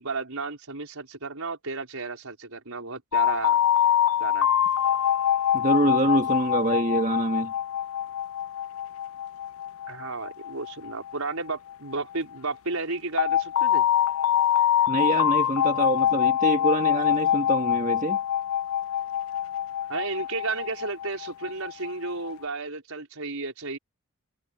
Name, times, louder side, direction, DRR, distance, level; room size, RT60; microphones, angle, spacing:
voice 1, 0.0-3.6 4.2-4.5 9.9-13.9 19.9-23.8, right 3 dB, 80° right, 4.9 m, -33 dB
sound 1, 3.1-11.9 13.2-22.3, left 10 dB, 70° left, 0.4 m, -25 dB
voice 2, 5.5-7.5 14.9-18.2, right 1 dB, 35° right, 1.7 m, -25 dB
head